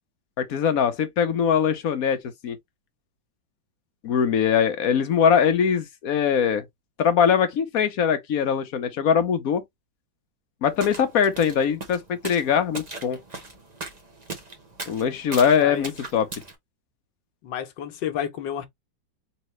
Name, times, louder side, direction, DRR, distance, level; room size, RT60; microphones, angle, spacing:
voice 1, 0.4-2.6 4.0-6.6 7.0-9.6 10.6-13.2 14.9-16.3, left 7 dB, 55° left, 1.1 m, -22 dB
sound 1, 10.7-16.5, right 2 dB, 25° right, 1.1 m, -39 dB
voice 2, 17.4-18.7, left 9 dB, 75° left, 1.6 m, -31 dB
4.1 x 3.3 x 3.2 m
omnidirectional pair, 2.0 m